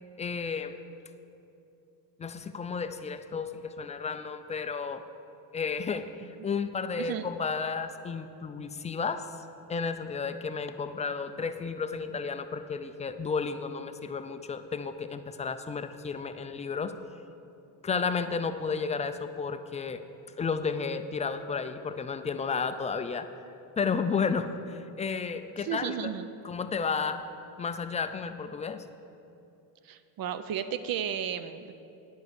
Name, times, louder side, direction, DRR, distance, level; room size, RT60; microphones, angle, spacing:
voice 1, 0.2-0.8 2.2-5.0 5.5-9.3 9.7-16.9 17.8-20.0 20.4-23.3 23.8-26.1 26.4-27.2 27.6-28.8, left 5 dB, 15° left, 9 dB, 0.3 m, -32 dB
voice 2, 25.6-26.3 29.8-31.7, right 9 dB, 45° right, 11 dB, 0.7 m, -33 dB
9.4 x 5.5 x 8.0 m, 2.8 s
supercardioid pair, 90°, 48 cm